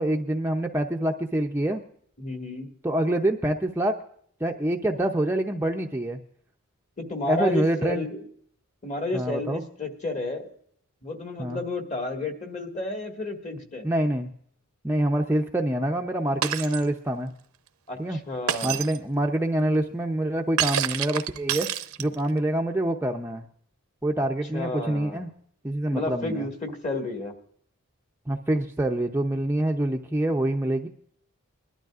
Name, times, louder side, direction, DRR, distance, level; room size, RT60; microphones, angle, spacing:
voice 1, 0.0-1.8 2.8-4.0 4.4-6.2 7.3-8.0 9.1-9.6 11.4-11.6 13.8-14.3 14.8-17.3 18.0-18.2 18.6-21.7 22.0-23.5 24.0-25.3 25.6-26.5 28.3-30.9, right 1 dB, 10° right, 2 dB, 0.5 m, -26 dB
voice 2, 2.2-2.7 7.0-8.2 8.8-10.5 11.0-13.9 17.9-18.8 24.2-24.3 24.5-25.2 25.9-27.3, left 2 dB, 35° left, 4 dB, 1.7 m, -31 dB
Shatter, 16.4-16.9 18.5-19.0 20.6-22.3, right 10 dB, 80° right, 0.7 m, -28 dB
22.5 x 12.0 x 2.4 m, 0.62 s
head